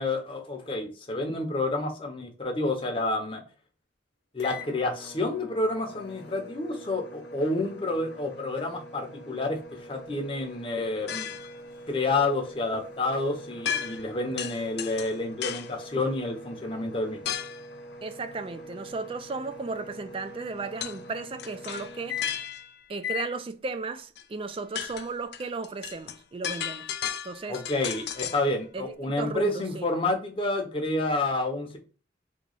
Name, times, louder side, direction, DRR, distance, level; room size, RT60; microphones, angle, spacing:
voice 1, 0.0-3.4 4.3-9.6 9.9-11.3 11.9-17.2 27.5-31.8, left 2 dB, 30° left, 0.7 m, -29 dB
sound 1, 4.4-22.6 23.0-23.3, left 3 dB, 80° left, 0.8 m, -43 dB
sound 2, 11.1-11.6 13.6-14.1 14.4-15.7 17.3-17.7 20.8-21.0 21.4-22.8 24.2-24.3 24.6-28.5, left 9 dB, 60° left, 0.4 m, -34 dB
voice 2, 18.0-22.2 22.9-26.9 27.2-27.6 28.7-29.9, right 3 dB, 30° right, 0.3 m, -35 dB
3.0 x 2.3 x 3.8 m
head